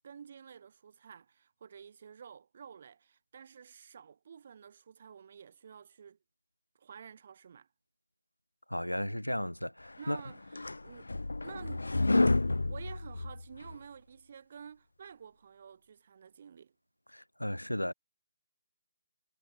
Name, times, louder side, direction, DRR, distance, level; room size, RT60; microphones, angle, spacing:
voice 1, 0.0-6.2 6.8-7.7 10.0-10.4 10.8-11.1 11.4-16.7, right 7 dB, 45° right, 1.3 m, -51 dB
voice 2, 8.7-10.2 17.1-17.9, equal, 85° left, 0.7 m, -35 dB
sound 1, 10.1-13.7, left 2 dB, 70° left, 0.3 m, -30 dB
figure-of-eight pair, 140°, 0 cm